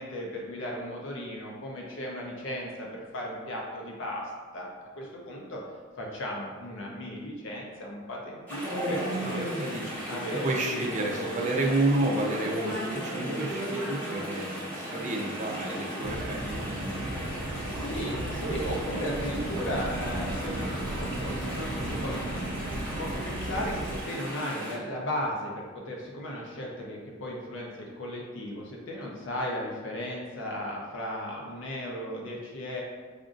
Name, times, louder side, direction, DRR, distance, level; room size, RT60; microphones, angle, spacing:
voice 1, 0.0-4.2 4.5-4.7 5.0-5.6 6.0-9.5 10.1-11.5 17.7-32.8, equal, 65° left, -2 dB, 0.5 m, -36 dB
Chatter / Stream, 8.5-24.8, equal, 10° left, 1.0 m, -36 dB
voice 2, 9.2-10.0 10.3-17.4 18.4-18.6, right 2 dB, 35° right, -1 dB, 0.5 m, -31 dB
sound 1, 16.0-24.0, right 1 dB, 80° right, 0.5 m, -35 dB
4.9 x 2.5 x 2.5 m, 1.4 s
head